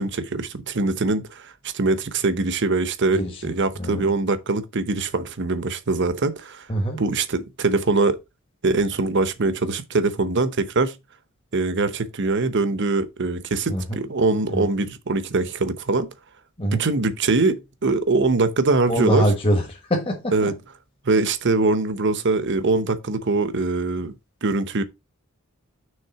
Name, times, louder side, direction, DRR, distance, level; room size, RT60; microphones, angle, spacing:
voice 1, 0.0-6.7 7.0-8.2 8.6-11.0 11.5-16.1 16.7-19.3 20.3-20.5 21.0-24.1 24.4-24.8, right 3 dB, 55° right, 0.9 m, -22 dB
voice 2, 3.1-4.1 6.7-7.0 13.7-14.0 14.5-14.7 16.6-16.8 18.9-20.5, equal, 25° left, 1.3 m, -24 dB
6.5 x 3.6 x 5.8 m
head